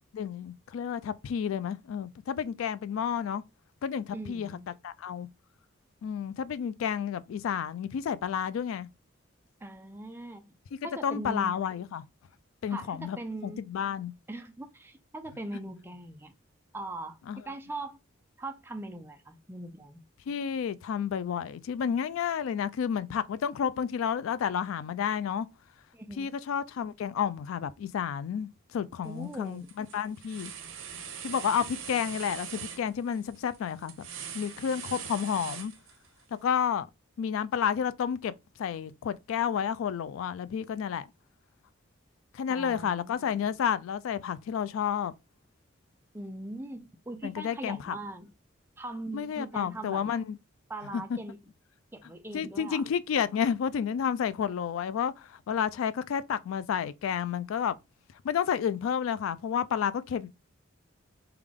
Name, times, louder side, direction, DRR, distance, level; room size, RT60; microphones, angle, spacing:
voice 1, 0.1-3.4 3.8-4.5 4.8-5.3 6.0-8.9 11.0-12.0 12.6-13.2 13.4-14.1 17.3-17.4 20.3-25.5 26.2-30.5 31.2-34.1 34.3-35.7 36.4-36.9 37.2-38.3 38.6-41.1 42.3-45.1 47.2-48.0 49.1-50.4 50.9-51.2 52.3-57.8 58.2-60.3, left 8 dB, 90° left, 0.3 m, -31 dB
voice 2, 4.1-4.7 9.6-10.6 10.8-11.6 12.7-13.7 14.3-16.3 16.7-17.2 17.5-18.0 18.4-20.0 25.9-26.3 29.0-29.7 42.5-43.2 46.1-48.3 48.8-50.1 50.7-51.4 51.9-52.8, right 1 dB, 10° right, 0.3 m, -40 dB
sound 1, 29.0-29.4 29.7-36.2, right 7 dB, 85° right, 0.6 m, -42 dB
3.4 x 2.3 x 3.5 m
head